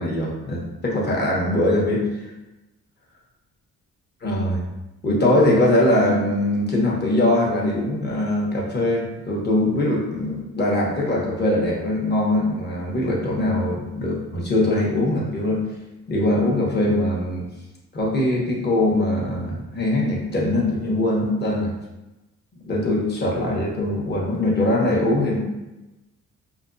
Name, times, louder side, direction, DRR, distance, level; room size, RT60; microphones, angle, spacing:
voice 1, 0.0-2.0 4.2-4.6 5.0-15.6 16.1-17.4 17.9-21.7 22.6-25.4, left 1 dB, 35° left, -3 dB, 1.1 m, -22 dB
5.0 x 2.3 x 2.6 m, 1.0 s
cardioid pair, 90°, 30 cm